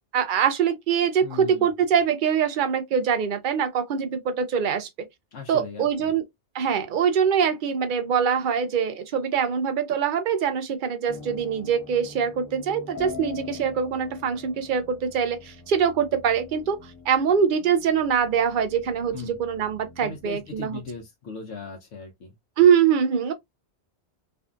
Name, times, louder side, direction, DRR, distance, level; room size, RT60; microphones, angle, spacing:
voice 1, 0.1-4.9 5.5-6.2 6.5-16.8 17.1-20.8 22.6-23.3, right 7 dB, 55° right, 0.6 m, -23 dB
voice 2, 1.2-1.7 5.3-6.1 19.1-19.4 20.0-22.3, left 4 dB, 85° left, 0.9 m, -38 dB
sound 1, 11.1-21.0, left 5 dB, 25° left, 0.4 m, -44 dB
2.6 x 2.4 x 2.3 m
omnidirectional pair, 1.1 m